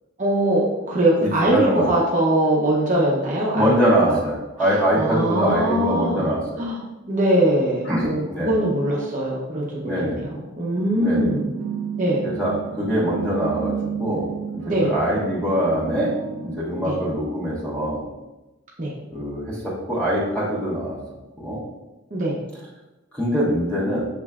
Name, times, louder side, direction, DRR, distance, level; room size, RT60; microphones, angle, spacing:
voice 1, 0.2-3.7 4.1-4.2 4.6-6.3 6.6-6.8 7.1-11.5 12.0-12.3 14.7-14.9 16.8-17.0 18.8-19.0 22.1-22.4, right 1 dB, 35° right, -4 dB, 0.7 m, -22 dB
voice 2, 1.2-1.9 3.5-6.6 7.8-8.6 9.8-10.2 11.0-11.3 12.2-14.3 14.5-16.1 16.4-18.1 19.1-21.0 21.4-21.6 23.1-24.0, equal, 5° left, -7 dB, 1.2 m, -23 dB
sound 1, 10.7-17.1, right 7 dB, 90° right, 0.3 m, -32 dB
6.6 x 3.1 x 2.3 m, 1.0 s
head